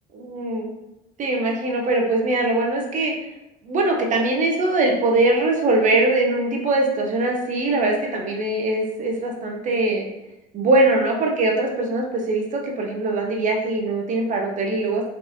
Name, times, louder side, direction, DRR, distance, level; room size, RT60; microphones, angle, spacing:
voice 1, 0.1-0.7 1.2-3.1 3.6-10.1 10.5-15.0, right 2 dB, 45° right, 0 dB, 0.9 m, -22 dB
3.3 x 3.3 x 2.6 m, 0.90 s
cardioid pair, 110°, 18 cm